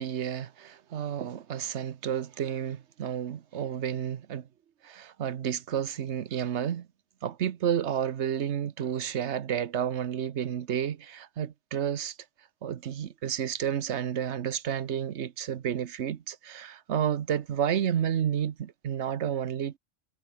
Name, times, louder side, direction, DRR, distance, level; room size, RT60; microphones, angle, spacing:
voice 1, 0.0-4.5 4.8-6.9 7.2-12.2 12.6-19.8, right 9 dB, 65° right, 1.1 m, -31 dB
omnidirectional pair, 1.3 m